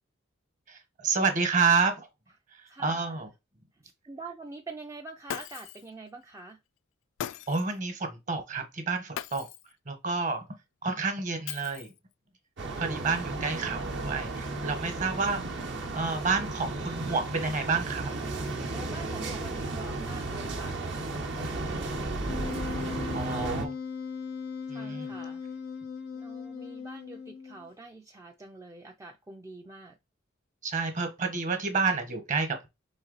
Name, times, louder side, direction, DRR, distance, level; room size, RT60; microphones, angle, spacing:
voice 1, 0.7-2.1 2.5-3.3 7.5-9.5 9.9-10.5 10.8-11.9 12.8-15.4 15.9-18.1 23.1-23.8 24.7-25.1 30.6-32.7, right 4 dB, 40° right, 1.1 m, -29 dB
voice 2, 2.7-3.2 3.8-6.6 18.7-22.1 24.7-25.4 26.1-30.0, right 3 dB, 15° right, 0.4 m, -45 dB
Shatter, 5.3-5.9 7.2-7.8 9.2-9.7 11.5-12.1, left 10 dB, 70° left, 0.3 m, -39 dB
sound 1, 12.6-23.7, right 2 dB, 60° right, 0.9 m, -34 dB
Wind instrument woodwind instrument, 22.3-27.7, left 6 dB, 90° left, 0.7 m, -38 dB
4.1 x 3.2 x 4.0 m
head